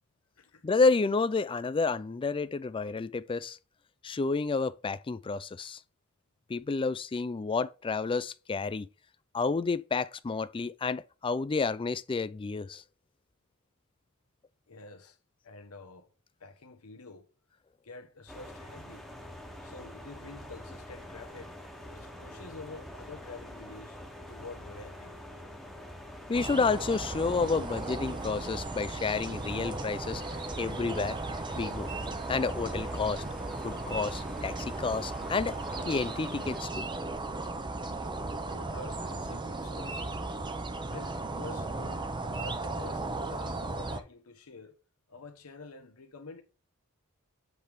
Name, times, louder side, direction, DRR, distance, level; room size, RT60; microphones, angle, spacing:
voice 1, 0.6-3.6 4.0-5.8 6.5-8.9 9.3-12.8 26.3-30.2 30.6-31.2 31.6-31.9 32.3-33.2 33.6-35.6 35.9-36.8, left 4 dB, 25° left, 0.3 m, -30 dB
voice 2, 14.7-15.2 15.4-16.1 16.4-17.3 17.8-19.1 19.6-21.6 21.9-24.0 24.3-25.2 38.2-40.1 40.8-44.8 45.1-46.4, left 3 dB, 85° left, 1.1 m, -48 dB
sound 1, 18.3-36.6, left 1 dB, ahead, 1.1 m, -46 dB
sound 2, 26.3-44.0, right 2 dB, 20° right, 0.6 m, -36 dB
7.9 x 3.5 x 4.7 m
head